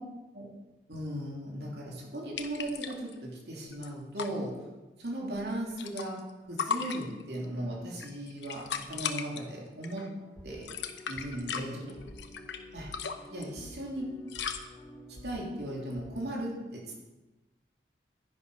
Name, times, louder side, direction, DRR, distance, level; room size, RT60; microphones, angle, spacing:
voice 1, 0.9-4.5 5.0-6.2 6.5-10.1 10.4-10.7 11.1-12.0 12.7-12.9 13.3-14.1 15.2-17.0, right 1 dB, 70° right, -3 dB, 3.4 m, -37 dB
sound 1, 2.4-3.1 3.4-3.5 3.7-4.3 5.3-6.3 6.6-7.4 7.9-9.4 9.8-10.1 10.5-12.6 12.9-13.4 14.3-14.6, left 6 dB, 90° left, 1.0 m, -36 dB
sound 2, 10.1-16.3, equal, 15° left, 1.9 m, -50 dB
11.0 x 10.5 x 5.1 m, 1.1 s
head